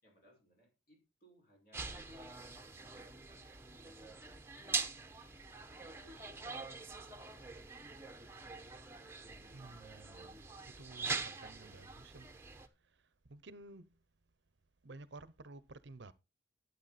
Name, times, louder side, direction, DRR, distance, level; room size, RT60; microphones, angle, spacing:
voice 1, 0.0-3.5 5.7-6.4 7.0-7.7, equal, 50° left, 5.8 m, -67 dB
sound 1, 1.7-12.7, right 4 dB, 15° right, 1.0 m, -44 dB
voice 2, 9.4-12.3 12.9-13.0 13.3-13.9 14.8-16.1, right 2 dB, 60° right, 0.8 m, -54 dB
11.5 x 8.2 x 4.2 m
head